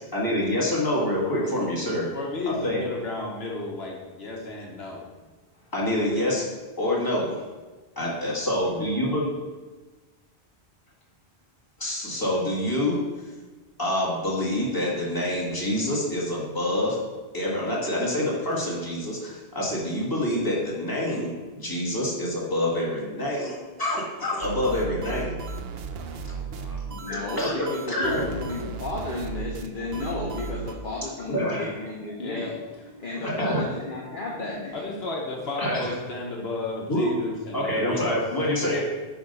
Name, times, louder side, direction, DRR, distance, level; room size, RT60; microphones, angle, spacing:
voice 1, 0.1-2.1 2.5-2.9 5.7-6.4 6.8-7.4 8.0-9.3 11.8-13.0 13.8-17.0 17.3-25.4 27.1-28.2 31.3-31.7 33.2-33.6 35.6-35.9 36.9-37.1 37.5-38.8, left 1 dB, 20° left, -5 dB, 1.8 m, -26 dB
voice 2, 2.1-5.0 32.2-32.6 34.7-38.8, left 2 dB, 75° left, -1 dB, 1.3 m, -33 dB
sound 1, 24.4-30.7, right 4 dB, 70° right, 0.8 m, -35 dB
voice 3, 26.4-34.9, left 2 dB, 55° left, -3 dB, 1.1 m, -34 dB
8.5 x 3.6 x 5.5 m, 1.3 s
omnidirectional pair, 1.1 m